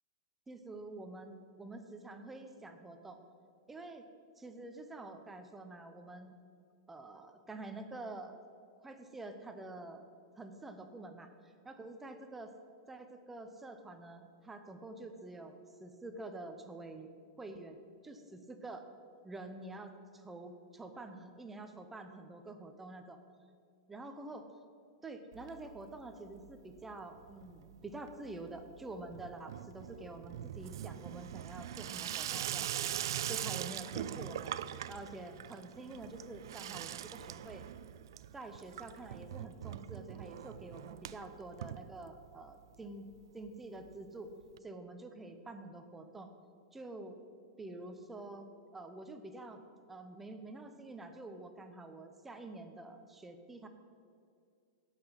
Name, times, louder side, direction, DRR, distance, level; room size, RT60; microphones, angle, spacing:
voice 1, 0.5-3.2 3.7-4.0 4.4-6.3 6.9-8.4 8.8-10.0 10.4-12.5 12.9-17.1 17.4-18.2 18.5-18.9 19.2-23.2 23.9-24.5 25.0-32.9 33.3-34.5 34.9-37.6 38.3-44.3 44.6-46.3 46.7-47.2 47.6-49.6 49.9-53.7, right 2 dB, 10° right, 7 dB, 0.6 m, -47 dB
Water tap faucet / Sink (filling or washing), 25.3-26.1 26.4-26.9 27.2-42.5 42.8-42.9 43.1-43.2 43.4-43.5 44.6-44.7, right 11 dB, 75° right, 0.4 m, -42 dB
12.0 x 5.8 x 8.0 m, 2.3 s
supercardioid pair, 160°, 2 cm